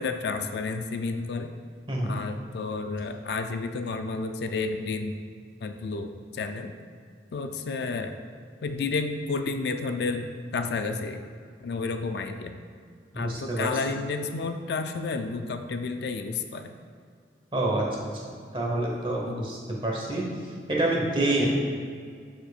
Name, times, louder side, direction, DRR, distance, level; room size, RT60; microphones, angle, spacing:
voice 1, 0.0-1.5 2.0-5.2 5.6-6.7 7.3-8.2 8.6-11.2 11.6-12.6 13.1-16.7 19.3-19.5, left 4 dB, 65° left, 7 dB, 0.4 m, -31 dB
voice 2, 13.1-13.7 17.5-17.8 18.5-20.2 20.7-21.5, right 2 dB, 30° right, -2 dB, 1.1 m, -27 dB
12.0 x 4.4 x 2.4 m, 2.2 s
head